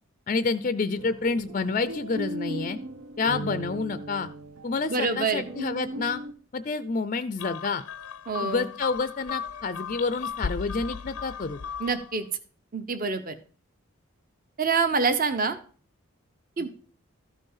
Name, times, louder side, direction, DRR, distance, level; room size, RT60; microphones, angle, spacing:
voice 1, 0.3-2.8 3.2-4.3 4.6-6.2 6.5-7.8 8.4-11.6 16.6-16.7, left 4 dB, 35° left, 13 dB, 0.4 m, -28 dB
sound 1, 1.0-6.3, right 1 dB, 85° right, 1.2 m, -37 dB
voice 2, 4.9-5.4 8.3-8.7 11.8-12.3 12.7-13.3 14.6-15.6 16.6-16.7, right 4 dB, 40° right, 10 dB, 0.9 m, -26 dB
sound 2, 7.4-12.1, left 6 dB, 90° left, 0.6 m, -36 dB
13.5 x 5.3 x 5.6 m, 0.41 s
head